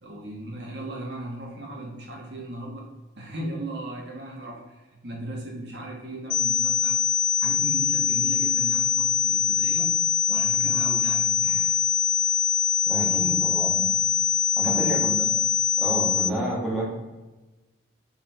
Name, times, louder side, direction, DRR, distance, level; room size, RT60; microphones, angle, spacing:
voice 1, 0.0-2.9 3.2-7.0 7.4-9.9 10.3-11.8 12.2-12.3 13.0-13.4 14.6-15.0, right 1 dB, 60° right, -1 dB, 1.5 m, -37 dB
sound 1, 6.3-16.3, left 7 dB, 70° left, 0.5 m, -23 dB
voice 2, 12.9-13.9 14.6-15.2 15.8-16.9, right 1 dB, ahead, -6 dB, 1.8 m, -29 dB
5.5 x 5.2 x 4.4 m, 1.1 s
head